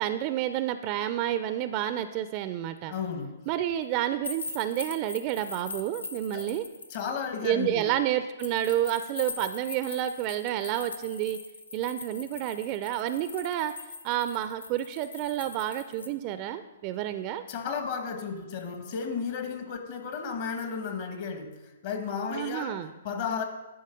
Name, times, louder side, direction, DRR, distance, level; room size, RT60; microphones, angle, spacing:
voice 1, 0.0-2.9 3.5-6.7 7.4-11.4 11.7-13.7 14.0-17.4 22.3-22.9, right 12 dB, 35° right, 11 dB, 0.4 m, -30 dB
voice 2, 2.9-3.4 6.3-6.5 6.9-7.9 17.5-23.4, left 6 dB, 50° left, 6 dB, 1.2 m, -33 dB
sound 1, 4.2-7.0 8.4-16.1, left 3 dB, 85° left, 0.7 m, -41 dB
10.5 x 4.2 x 5.1 m, 1.1 s
hypercardioid pair, 125°, 0 cm